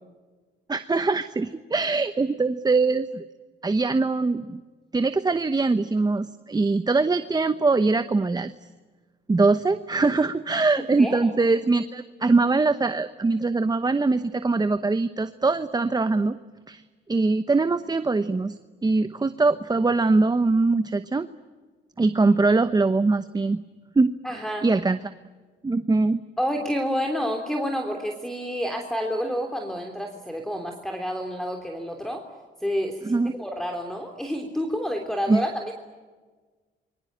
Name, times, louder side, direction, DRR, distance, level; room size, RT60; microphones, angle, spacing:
voice 1, 0.7-3.2 3.6-4.6 4.9-8.5 9.3-16.4 16.7-16.8 17.1-21.3 22.0-23.6 23.9-25.0 25.6-26.2 33.0-33.3 35.3-35.4, right 3 dB, 20° right, 11 dB, 1.0 m, -22 dB
voice 2, 11.0-11.3 24.2-24.7 26.4-32.2 32.6-35.7, equal, ahead, 4 dB, 3.3 m, -29 dB
27.5 x 23.5 x 8.8 m, 1.4 s
cardioid pair, 90°, 20 cm